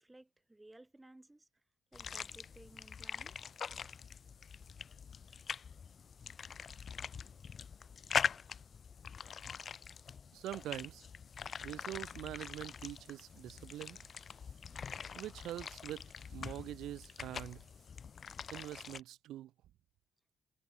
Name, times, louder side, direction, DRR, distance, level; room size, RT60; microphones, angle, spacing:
voice 1, 0.0-1.5 1.9-3.4, right 2 dB, 10° right, 5.7 m, -58 dB
sound 1, 1.9-19.0, left 6 dB, 45° left, 0.6 m, -43 dB
voice 2, 10.3-11.1 11.6-14.0 15.1-17.6 18.5-19.5, right 13 dB, 80° right, 1.3 m, -44 dB
sound 2, 11.3-17.9, right 8 dB, 60° right, 5.7 m, -73 dB
cardioid pair, 90°, 0 cm